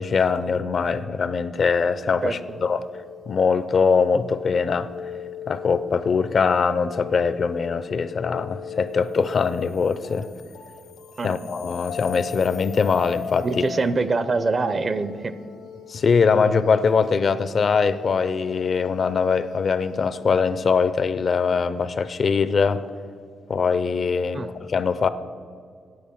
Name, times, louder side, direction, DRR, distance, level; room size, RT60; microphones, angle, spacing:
voice 1, 0.0-2.9 3.3-4.9 5.5-10.3 11.2-13.5 15.9-22.8 23.5-25.1, left 5 dB, 45° left, 14 dB, 0.5 m, -22 dB
sound 1, 2.2-20.6, left 7 dB, 75° left, 0.9 m, -39 dB
voice 2, 2.2-2.6 11.2-11.4 13.4-15.3 24.3-24.5, right 3 dB, 35° right, 13 dB, 0.5 m, -24 dB
9.5 x 7.9 x 6.9 m, 2.1 s
cardioid pair, 125°, 0 cm